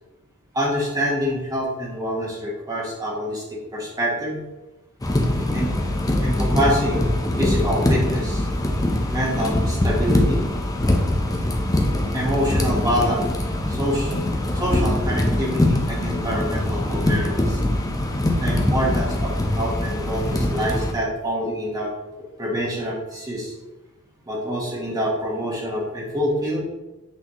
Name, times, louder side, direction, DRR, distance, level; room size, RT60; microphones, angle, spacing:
voice 1, 0.5-3.4 3.7-4.4 5.5-5.7 6.2-7.1 7.4-8.5 9.1-10.4 12.1-13.3 13.7-14.2 14.5-17.6 18.4-21.9 22.4-23.5 24.3-26.6, equal, 15° right, -4 dB, 1.3 m, -26 dB
sound 1, 5.0-20.9, left 1 dB, 15° left, 0.7 m, -22 dB
8.3 x 4.2 x 3.0 m, 1.1 s
head